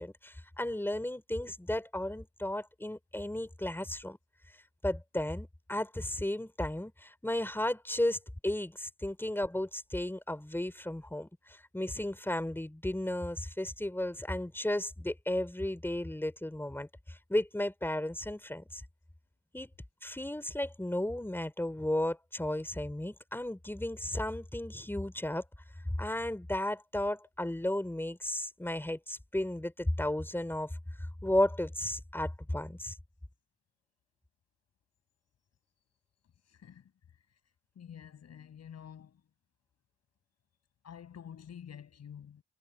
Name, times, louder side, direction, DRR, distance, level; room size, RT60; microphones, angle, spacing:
voice 1, 0.0-4.2 4.8-18.8 19.5-19.7 20.0-25.4 26.0-30.7 31.2-33.0, left 1 dB, 5° left, 3.9 m, -34 dB
voice 2, 37.8-39.1 40.8-42.4, left 8 dB, 55° left, 6.6 m, -48 dB
cardioid pair, 90°, 30 cm